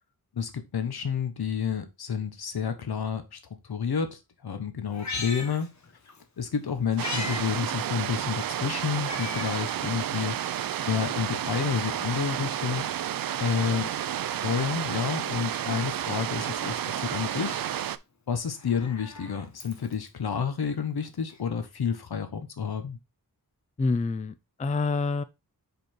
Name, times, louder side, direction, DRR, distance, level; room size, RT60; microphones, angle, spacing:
voice 1, 0.3-3.4 3.7-5.7 6.4-10.4 10.8-12.9 13.4-13.9 14.4-17.6 18.3-23.0, left 7 dB, 75° left, 1.2 m, -30 dB
Meow, 4.9-6.2 6.6-7.4 7.8-7.9 9.0-9.6 10.2-10.3 11.2-12.2 13.8-14.8 16.1-16.9 18.4-20.1 21.3-21.4, left 3 dB, 45° left, 1.3 m, -40 dB
sound 1, 7.0-18.0, right 11 dB, 65° right, 0.5 m, -31 dB
voice 2, 23.8-25.2, left 3 dB, 20° left, 0.4 m, -27 dB
5.2 x 4.2 x 4.4 m
wide cardioid pair, 115°, 38 cm